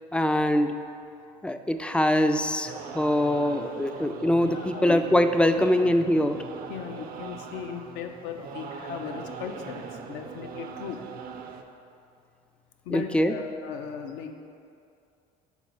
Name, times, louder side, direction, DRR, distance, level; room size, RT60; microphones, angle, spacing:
voice 1, 0.1-0.7 1.4-6.4 12.9-13.3, left 1 dB, 5° left, 8 dB, 0.3 m, -23 dB
sound 1, 2.7-11.6, right 6 dB, 50° right, 0.5 m, -41 dB
voice 2, 4.4-5.0 6.7-11.0 12.9-14.3, left 7 dB, 65° left, 5 dB, 0.6 m, -37 dB
5.4 x 4.0 x 4.7 m, 2.5 s
hypercardioid pair, 65°, 20 cm